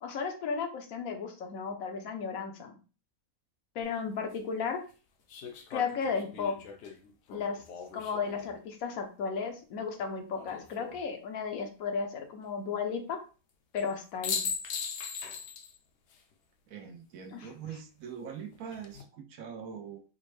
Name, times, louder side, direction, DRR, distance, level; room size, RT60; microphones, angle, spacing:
voice 1, 0.0-2.8 3.7-4.8 5.7-6.6 7.3-7.6 7.9-13.2 13.7-14.4 17.3-17.5, left 5 dB, 75° left, 4 dB, 1.1 m, -34 dB
sound 1, 3.8-3.9 5.3-8.5 10.3-11.0 13.8-13.9 14.2-15.8 16.1-16.2 18.5-19.0, left 6 dB, 60° left, 0.8 m, -39 dB
voice 2, 16.7-20.0, right 7 dB, 75° right, 5 dB, 1.1 m, -43 dB
5.0 x 2.1 x 3.1 m, 0.35 s
omnidirectional pair, 1.5 m